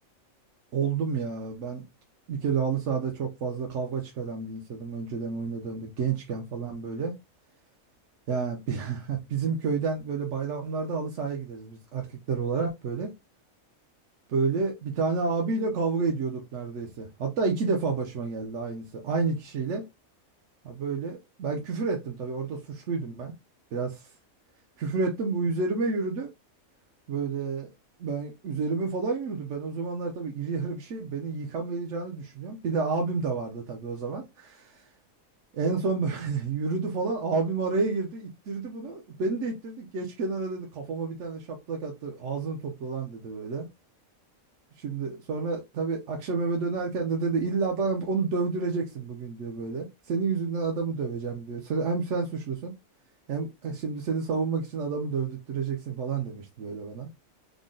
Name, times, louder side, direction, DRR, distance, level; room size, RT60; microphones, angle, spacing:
voice 1, 0.7-1.8 2.3-7.2 8.3-13.1 14.3-19.8 20.6-23.3 23.7-24.1 24.8-26.3 27.1-27.7 28.0-34.9 35.5-43.7 44.8-52.7 53.3-57.1, right 4 dB, 65° right, 0.9 m, -30 dB
3.7 x 2.1 x 3.7 m
omnidirectional pair, 1.5 m